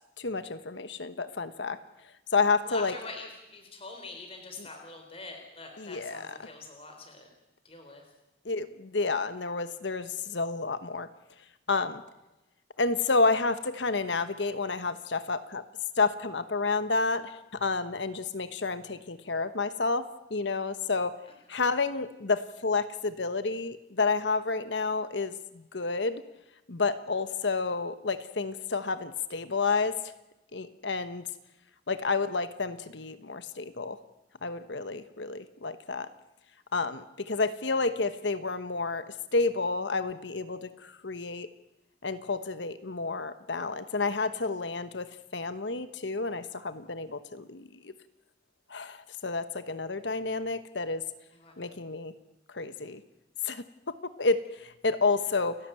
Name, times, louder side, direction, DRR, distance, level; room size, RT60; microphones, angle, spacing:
voice 1, 0.2-1.8 2.3-2.9 4.6-4.7 5.8-6.5 8.4-11.1 11.7-12.0 12.8-15.6 16.0-21.1 21.5-26.2 26.7-30.0 30.5-31.3 31.9-34.0 34.4-36.1 36.7-41.5 42.0-47.9 48.7-51.0 51.6-52.1 52.5-53.0 53.4-53.6 54.2-55.6, left 3 dB, 75° left, 11 dB, 1.2 m, -30 dB
voice 2, 2.6-7.3 7.6-8.0 51.3-51.6, left 3 dB, 30° left, 3 dB, 3.9 m, -44 dB
29.5 x 12.0 x 9.1 m, 0.96 s
head